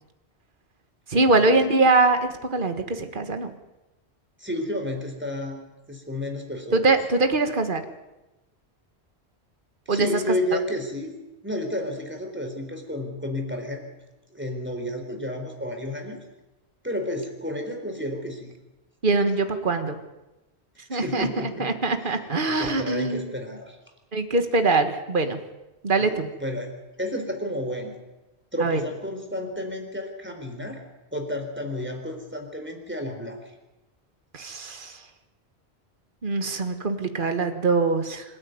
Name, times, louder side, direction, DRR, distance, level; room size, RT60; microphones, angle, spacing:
voice 1, 1.1-3.5 6.7-7.8 9.9-10.1 19.0-20.0 20.9-21.3 21.6-23.3 24.1-25.4 25.8-26.3 28.6-28.8 34.3-35.0 36.2-38.2, right 3 dB, 50° right, 7 dB, 1.8 m, -23 dB
voice 2, 4.4-6.8 9.9-11.1 11.4-13.9 14.3-16.2 16.8-18.5 20.9-21.7 22.0-23.8 26.0-27.9 28.5-30.8 31.1-33.4, left 1 dB, 10° right, 3 dB, 3.9 m, -31 dB
26.0 x 13.5 x 9.5 m, 1.0 s
omnidirectional pair, 1.1 m